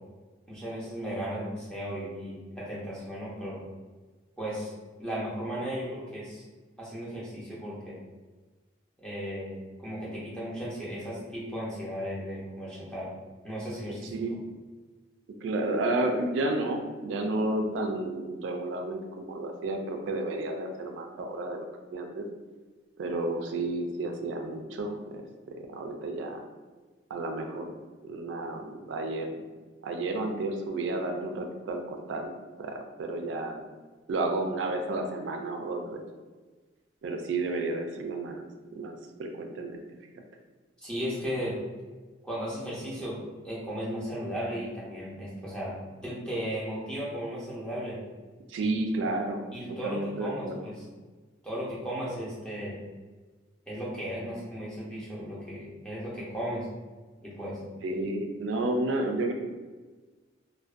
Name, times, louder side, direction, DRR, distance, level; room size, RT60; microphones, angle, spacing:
voice 1, 0.5-3.6 4.4-4.7 5.0-6.4 6.8-8.0 9.0-13.1 13.4-14.1 40.8-41.6 42.2-45.7 46.0-48.0 48.6-48.7 49.5-50.8 51.4-52.8 53.7-56.7 57.2-57.6, equal, 5° left, -8 dB, 0.6 m, -35 dB
voice 2, 15.4-21.7 21.9-22.2 23.0-26.4 27.1-27.7 28.0-29.4 29.8-32.3 32.6-33.6 34.1-36.0 37.0-38.4 38.7-39.8 48.5-49.5 49.8-50.7 57.8-59.3, right 2 dB, 75° right, 3 dB, 0.3 m, -31 dB
2.5 x 2.1 x 2.4 m, 1.3 s
head